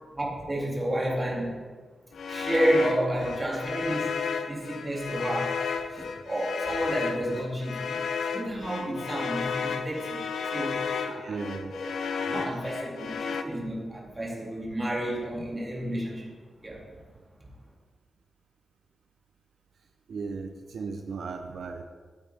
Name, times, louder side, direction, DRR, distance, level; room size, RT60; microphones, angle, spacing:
voice 1, 0.2-1.5 2.3-5.6 5.9-11.4 12.3-16.3 16.6-16.8, right 1 dB, 20° right, -3 dB, 2.3 m, -31 dB
sound 1, 2.1-13.4, left 6 dB, 85° left, 0.6 m, -33 dB
voice 2, 11.2-11.8 12.2-12.5 20.1-21.8, right 4 dB, 70° right, 5 dB, 0.6 m, -36 dB
13.0 x 8.8 x 3.4 m, 1.4 s
wide cardioid pair, 140°, 0 cm